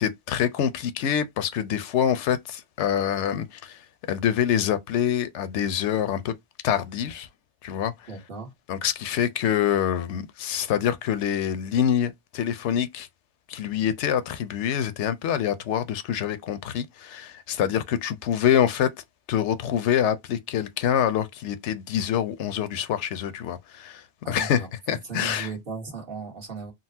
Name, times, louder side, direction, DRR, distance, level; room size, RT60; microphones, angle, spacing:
voice 1, 0.0-3.8 4.1-6.3 6.6-7.3 7.6-7.9 8.7-13.1 13.5-18.9 19.3-25.5, left 9 dB, 80° left, 0.9 m, -25 dB
voice 2, 8.1-8.5 24.2-26.7, right 4 dB, 55° right, 1.4 m, -37 dB
3.9 x 2.0 x 2.7 m
omnidirectional pair, 1.2 m